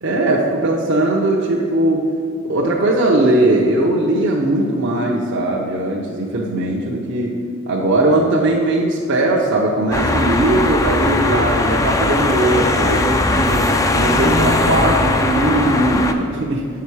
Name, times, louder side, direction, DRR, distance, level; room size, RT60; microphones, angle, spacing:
voice 1, 0.0-2.1 2.4-16.7, right 1 dB, 55° right, -3 dB, 0.7 m, -19 dB
sound 1, 9.9-16.1, left 2 dB, 15° left, 0.3 m, -18 dB
7.4 x 5.8 x 4.7 m, 2.2 s
head